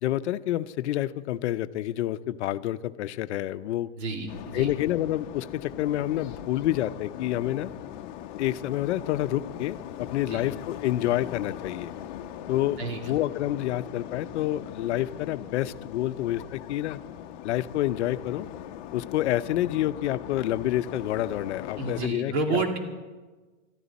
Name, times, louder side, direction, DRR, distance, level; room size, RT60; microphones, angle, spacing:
voice 1, 0.0-3.9 4.5-7.7 8.4-11.9 12.5-12.8 13.0-17.0 17.4-18.5 18.9-22.6, left 13 dB, 70° left, 13 dB, 0.7 m, -28 dB
voice 2, 4.0-4.7 10.3-10.4 12.8-13.1 21.8-22.8, right 3 dB, 65° right, 3 dB, 2.5 m, -30 dB
sound 1, 4.3-22.1, left 11 dB, 40° left, 0.8 m, -40 dB
21.5 x 13.5 x 4.1 m, 1.3 s
supercardioid pair, 175°, 36 cm